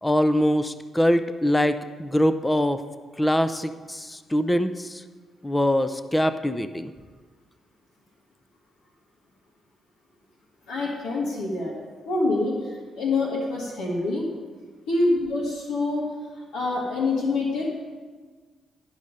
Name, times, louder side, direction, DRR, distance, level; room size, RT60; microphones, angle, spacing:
voice 1, 0.0-2.8 3.2-5.0 5.4-6.9, equal, 15° left, 11 dB, 0.5 m, -23 dB
voice 2, 10.7-11.7 12.0-14.3 14.9-16.1 16.5-17.7, left 2 dB, 85° left, -3 dB, 1.4 m, -26 dB
12.0 x 5.4 x 5.1 m, 1.4 s
supercardioid pair, 50°, 0 cm